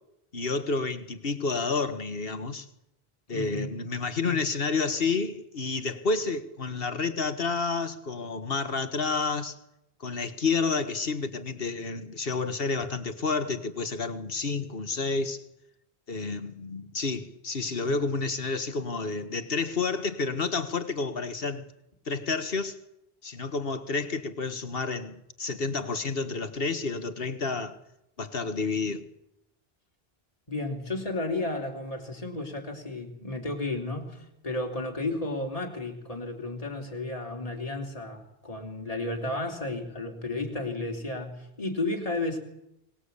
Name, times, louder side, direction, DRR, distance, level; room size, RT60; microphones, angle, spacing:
voice 1, 0.3-2.7 3.3-9.6 10.0-15.4 16.1-21.7 22.1-22.8 23.2-27.8 28.2-29.1, left 4 dB, 65° left, 1.8 m, -30 dB
voice 2, 3.3-3.7 4.2-4.4 17.8-18.0 30.5-42.4, left 2 dB, 35° left, 3.7 m, -33 dB
24.0 x 19.5 x 8.4 m
omnidirectional pair, 1.0 m